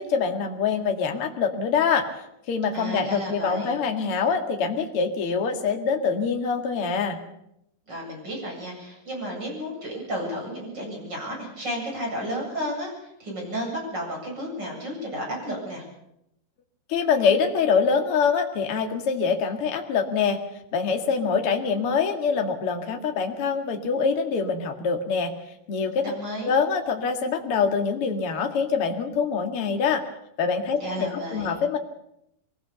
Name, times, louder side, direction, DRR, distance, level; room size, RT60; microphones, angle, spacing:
voice 1, 0.0-2.1 2.5-7.2 16.9-20.4 20.7-25.3 25.7-26.1 26.4-30.0 30.4-31.8, left 5 dB, 60° left, 3 dB, 1.5 m, -24 dB
voice 2, 2.7-3.7 7.9-15.8 26.0-26.5 30.8-31.5, equal, 20° right, -1 dB, 8.4 m, -32 dB
23.5 x 18.5 x 6.9 m, 0.80 s
omnidirectional pair, 6.0 m